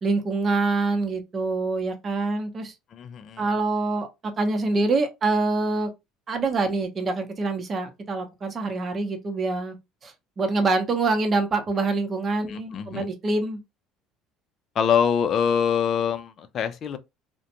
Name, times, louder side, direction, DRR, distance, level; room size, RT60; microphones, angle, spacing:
voice 1, 0.0-2.7 3.4-4.1 4.4-5.9 6.3-9.8 10.0-13.6, right 3 dB, 35° right, 0.7 m, -25 dB
voice 2, 2.9-3.4 12.5-13.1 14.8-17.0, left 7 dB, 50° left, 0.4 m, -24 dB
2.4 x 2.1 x 2.8 m
hypercardioid pair, 75°, 0 cm